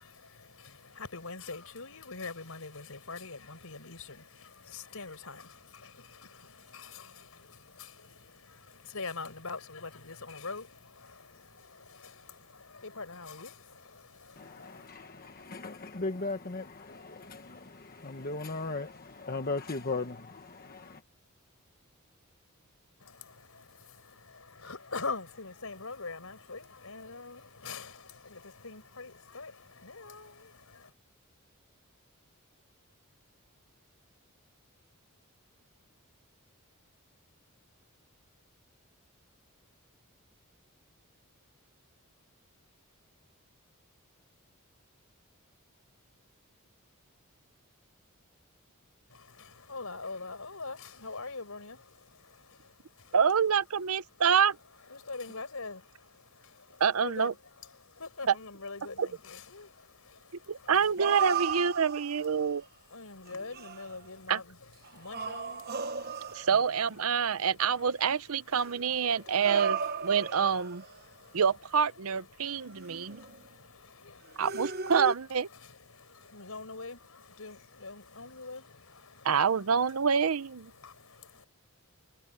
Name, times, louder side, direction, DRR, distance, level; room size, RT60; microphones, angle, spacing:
voice 1, 0.0-14.9 23.0-30.9 49.1-53.2 54.1-54.4 54.7-60.9 61.8-66.6 67.1-81.5, left 4 dB, 70° left, 5.4 m, -45 dB
voice 2, 14.4-21.0, left 3 dB, 45° left, 1.3 m, -37 dB
voice 3, 53.1-54.6 56.8-57.3 59.0-59.1 60.5-62.6 64.3-64.4 66.3-70.8 71.3-73.2 74.4-75.5 79.2-80.7, right 6 dB, 75° right, 0.7 m, -27 dB
sound 1, 60.7-62.4 63.3-63.9 64.9-66.8 68.5-71.0 72.7-73.5 74.4-75.1, right 6 dB, 45° right, 1.1 m, -35 dB
head